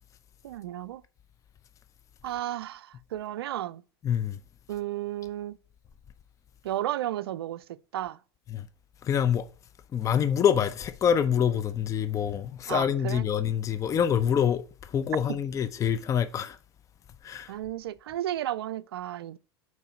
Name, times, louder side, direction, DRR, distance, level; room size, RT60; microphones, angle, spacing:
voice 1, 0.4-1.0 2.2-2.9 3.1-3.8 4.7-5.6 6.6-7.6 7.9-8.2 12.7-13.2 17.5-19.4, right 13 dB, 70° right, 0.4 m, -33 dB
voice 2, 4.0-4.4 8.5-8.6 9.1-9.5 9.9-14.6 14.9-16.6 17.2-17.5, left 8 dB, 25° left, 0.5 m, -26 dB
5.5 x 4.6 x 4.9 m
figure-of-eight pair, 85°, 13 cm